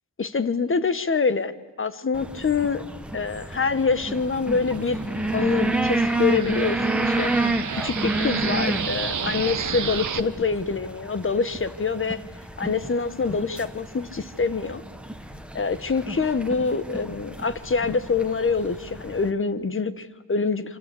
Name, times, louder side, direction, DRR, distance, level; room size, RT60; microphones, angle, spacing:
voice 1, 0.2-1.5 1.8-2.8 3.1-5.0 5.3-7.3 7.7-12.2 12.6-14.8 15.5-20.8, left 5 dB, 30° left, 13 dB, 1.4 m, -25 dB
sound 1, 2.1-19.3, right 2 dB, 5° right, 1.7 m, -30 dB
sound 2, 2.9-10.2, right 7 dB, 50° right, 1.3 m, -33 dB
26.5 x 26.0 x 8.5 m, 1.2 s
cardioid pair, 95°, 38 cm